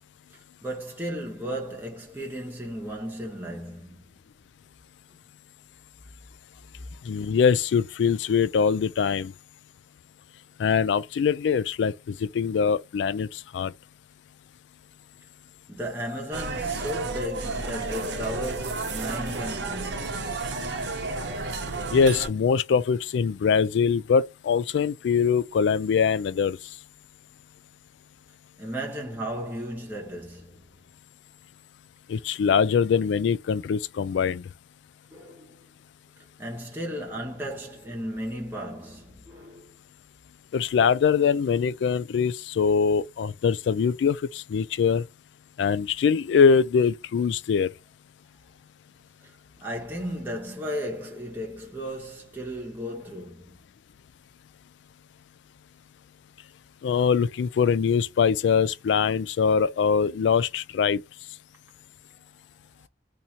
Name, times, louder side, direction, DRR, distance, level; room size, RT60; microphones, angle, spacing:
voice 1, 0.6-4.0 15.7-20.4 28.6-30.6 35.1-35.6 36.4-39.7 49.6-53.6, equal, 10° right, 1.1 m, -35 dB
voice 2, 7.1-9.3 10.6-13.7 21.9-26.6 32.1-34.4 40.5-45.0 45.6-47.7 56.8-61.0, left 6 dB, 80° left, 0.3 m, -23 dB
sound 1, 16.3-22.3, right 3 dB, 80° right, 0.8 m, -32 dB
2.7 x 2.6 x 4.3 m
head